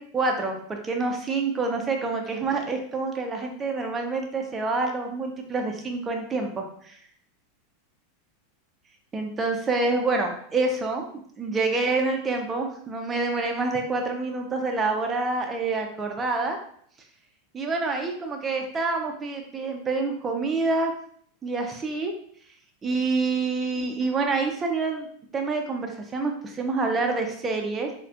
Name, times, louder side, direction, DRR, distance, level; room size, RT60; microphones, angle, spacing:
voice 1, 0.0-7.0 9.1-11.0 11.4-16.6 17.5-20.9 21.4-22.1 22.8-25.1 25.3-27.9, right 3 dB, 15° right, 2 dB, 0.3 m, -27 dB
2.2 x 2.1 x 2.6 m, 0.63 s
supercardioid pair, 150°, 0 cm